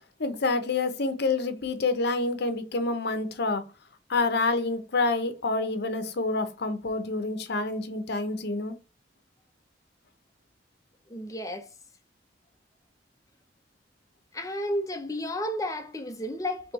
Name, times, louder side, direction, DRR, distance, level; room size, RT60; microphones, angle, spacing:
voice 1, 0.2-3.6 4.1-8.7, left 3 dB, 60° left, 0.8 m, -27 dB
voice 2, 11.1-11.7 14.3-16.7, left 1 dB, 20° left, 0.7 m, -32 dB
3.3 x 3.0 x 4.6 m
head